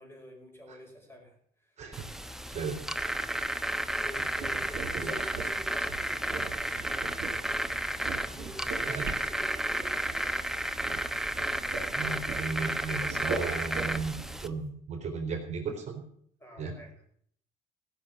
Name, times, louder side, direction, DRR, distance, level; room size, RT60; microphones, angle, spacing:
voice 1, 0.0-1.4 1.6-1.8 2.5-2.6 4.0-7.2 8.3-10.4 16.4-16.9, equal, 15° left, 2 dB, 5.8 m, -48 dB
voice 2, 1.8-2.1 2.5-2.8 4.9-5.1 8.8-9.1 11.9-16.0 16.6-16.7, right 4 dB, 45° right, 2 dB, 4.0 m, -35 dB
sound 1, 1.9-14.5, right 1 dB, 5° right, 0.9 m, -32 dB
sound 2, 4.2-14.7, right 5 dB, 60° right, 4.7 m, -41 dB
16.5 x 6.8 x 9.2 m, 0.63 s
cardioid pair, 110°, 17 cm